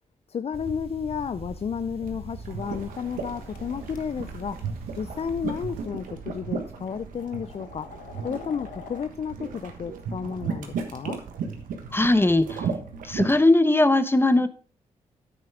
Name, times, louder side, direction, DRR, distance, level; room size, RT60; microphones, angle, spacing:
voice 1, 0.3-4.7 4.9-7.9 8.2-11.2, left 7 dB, 50° left, 0.5 m, -32 dB
sound 1, 0.5-5.9, right 2 dB, 45° right, 1.7 m, -42 dB
sound 2, 2.0-13.3, right 5 dB, 85° right, 1.3 m, -35 dB
sound 3, 2.9-4.0 5.1-5.3 6.2-6.3 6.8-9.1, left 7 dB, 85° left, 0.9 m, -46 dB
voice 2, 11.9-12.6 13.0-14.5, left 2 dB, 15° left, 1.0 m, -19 dB
9.4 x 8.0 x 3.5 m
supercardioid pair, 45°, 14 cm